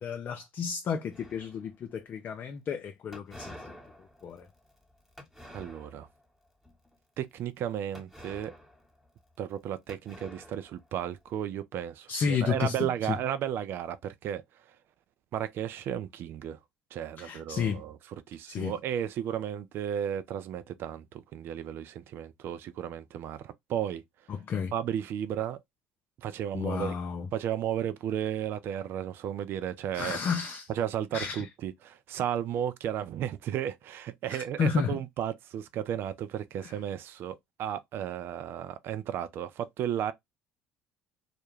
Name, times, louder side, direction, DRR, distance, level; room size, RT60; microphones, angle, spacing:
voice 1, 0.0-3.8 4.2-4.5 12.1-13.2 17.2-17.8 18.5-18.8 24.3-24.7 26.5-27.3 29.9-30.7 31.1-31.5 34.3-35.0, left 6 dB, 45° left, 0.4 m, -32 dB
sound 1, 1.1-1.9 3.1-6.2 6.6-6.9 7.9-9.6 9.9-11.2, left 1 dB, ahead, 1.0 m, -50 dB
voice 2, 5.5-6.1 7.2-8.5 9.4-14.4 15.3-16.6 16.9-18.0 18.3-24.0 24.7-25.6 26.2-26.9 27.3-30.2 30.7-40.1, right 10 dB, 55° right, 0.4 m, -34 dB
2.3 x 2.1 x 3.1 m
hypercardioid pair, 65°, 4 cm